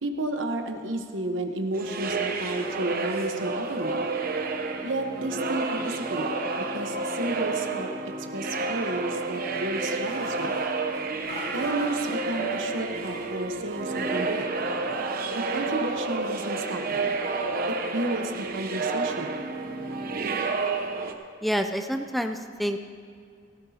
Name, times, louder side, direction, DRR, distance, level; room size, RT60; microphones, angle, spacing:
voice 1, 0.0-4.0 4.8-6.3 6.5-7.9 8.3-10.6 11.5-14.5 15.3-17.2 17.7-19.4, right 1 dB, 80° right, 5 dB, 1.1 m, -32 dB
sound 1, 1.7-21.1, right 3 dB, 50° right, 0.8 m, -30 dB
sound 2, 9.8-10.6 11.2-12.1 12.7-13.4 13.7-14.3, left 1 dB, 35° left, 3.8 m, -43 dB
voice 2, 21.4-22.8, equal, ahead, 6 dB, 0.4 m, -28 dB
17.0 x 15.0 x 2.8 m, 2.3 s
head